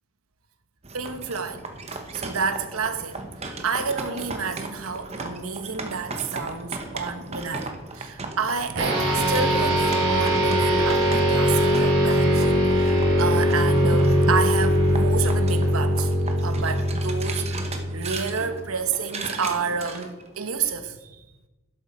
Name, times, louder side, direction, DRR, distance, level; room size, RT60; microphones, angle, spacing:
sound 1, 0.8-20.6, right 2 dB, 30° right, 1.0 m, -36 dB
voice 1, 0.9-1.6 2.1-16.1 16.4-21.2, right 5 dB, 85° right, 9 dB, 1.0 m, -30 dB
sound 2, 8.8-18.5, equal, 55° right, 4.1 m, -21 dB
11.5 x 7.8 x 4.4 m, 1.1 s
head